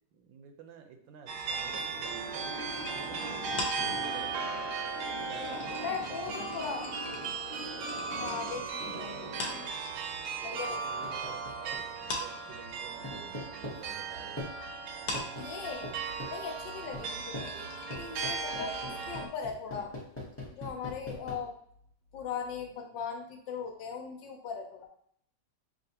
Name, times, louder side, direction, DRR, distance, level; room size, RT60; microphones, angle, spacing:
voice 1, 0.0-6.8 10.4-14.5 16.8-17.3 18.9-19.2 21.3-21.5, right 7 dB, 90° right, 5 dB, 1.4 m, -51 dB
sound 1, 1.3-10.3 10.6-11.6 11.9-19.2, left 2 dB, 60° left, 1.2 m, -43 dB
sound 2, 1.3-19.3, right 5 dB, 75° right, 1.0 m, -37 dB
sound 3, 1.6-9.7 11.0-12.1 13.0-13.8 14.4-14.5 15.1-15.5 15.8-16.3 16.9-17.1 17.3-17.5 17.9-21.3, left 1 dB, 10° left, 0.7 m, -43 dB
voice 2, 5.4-6.8 8.1-9.3 10.4-11.4 15.4-15.9 16.3-19.9 20.5-21.5 22.1-24.9, left 6 dB, 75° left, 3 dB, 1.4 m, -39 dB
5.6 x 2.5 x 2.8 m, 0.65 s
omnidirectional pair, 2.0 m